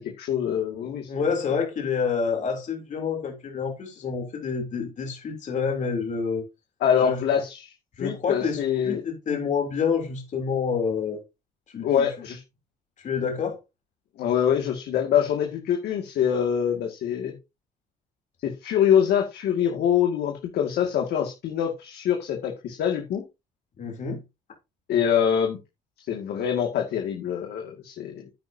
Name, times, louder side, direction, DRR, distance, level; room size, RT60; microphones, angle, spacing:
voice 1, 0.0-1.1 6.8-7.7 8.0-9.0 11.8-12.4 14.2-17.3 18.4-23.2 24.9-25.6 26.1-28.3, left 8 dB, 70° left, 2.3 m, -24 dB
voice 2, 1.1-6.4 7.0-7.3 8.0-11.2 11.7-12.1 13.0-13.6 23.8-24.2, left 6 dB, 45° left, 3.4 m, -28 dB
10.5 x 9.4 x 2.8 m
cardioid pair, 110°, 17 cm